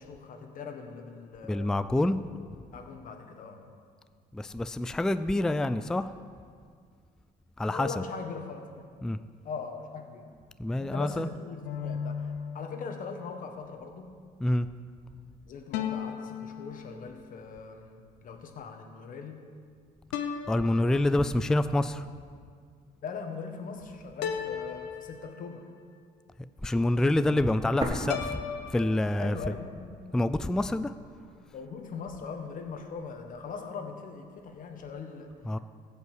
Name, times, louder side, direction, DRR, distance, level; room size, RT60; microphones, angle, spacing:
voice 1, 0.0-1.8 2.7-3.7 7.6-8.9 9.4-10.3 10.8-14.1 15.5-19.5 23.0-25.7 29.2-30.1 31.5-35.6, left 5 dB, 50° left, 5 dB, 1.5 m, -41 dB
voice 2, 1.5-2.2 4.3-6.1 7.6-7.9 9.0-9.2 10.6-11.3 14.4-14.7 20.5-22.1 26.6-28.4 28.7-29.4 30.1-30.9 35.5-35.6, left 1 dB, 5° left, 12 dB, 0.3 m, -27 dB
sound 1, 11.6-13.3 15.7-17.4 20.1-21.6 24.2-25.8 28.1-29.0, left 7 dB, 85° left, 0.9 m, -36 dB
sound 2, 27.8-29.7 30.0-30.1 30.8-31.8, right 1 dB, 25° right, 1.8 m, -37 dB
15.0 x 5.5 x 8.1 m, 2.1 s
cardioid pair, 110°, 17 cm